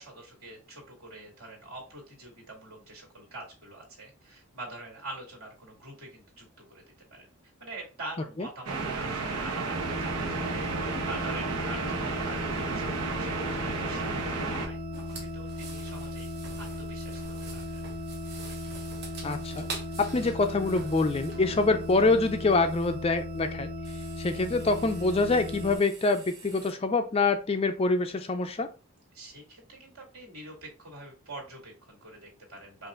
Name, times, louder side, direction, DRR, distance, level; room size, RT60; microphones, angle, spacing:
voice 1, 0.0-6.8 7.1-7.3 7.6-10.7 11.0-12.9 13.2-16.3 16.6-17.6 29.1-32.9, right 2 dB, 70° right, -1 dB, 2.4 m, -45 dB
sound 1, 8.7-14.7, right 4 dB, 90° right, 1.1 m, -32 dB
sound 2, 9.7-25.8, left 1 dB, 25° right, 0.9 m, -37 dB
sound 3, 14.9-23.4 23.8-26.7, right 4 dB, 50° right, 1.0 m, -46 dB
voice 2, 19.2-19.6 20.0-23.7 24.2-28.7, left 3 dB, 25° left, 8 dB, 0.4 m, -25 dB
5.5 x 2.5 x 3.7 m, 0.33 s
head